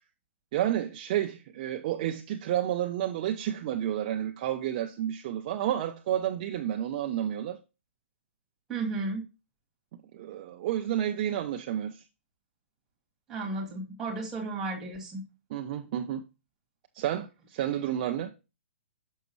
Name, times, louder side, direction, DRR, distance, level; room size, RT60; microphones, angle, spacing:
voice 1, 0.5-7.6 10.1-12.0 15.5-16.2 16.9-18.3, right 11 dB, 30° right, 0.5 m, -30 dB
voice 2, 8.7-9.2 13.3-15.2, right 3 dB, 10° right, 2.1 m, -33 dB
6.3 x 6.3 x 3.0 m
hypercardioid pair, 165°, 7 cm